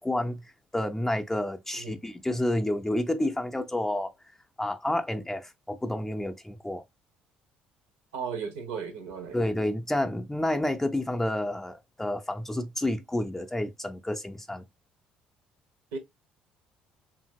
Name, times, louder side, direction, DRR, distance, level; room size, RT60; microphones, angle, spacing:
voice 1, 0.0-4.1 4.6-6.8 9.3-14.6, left 1 dB, 10° left, 0.5 m, -30 dB
voice 2, 8.1-9.4 15.9-16.0, right 6 dB, 75° right, 0.7 m, -35 dB
2.8 x 2.6 x 2.6 m
hypercardioid pair, 55°, 4 cm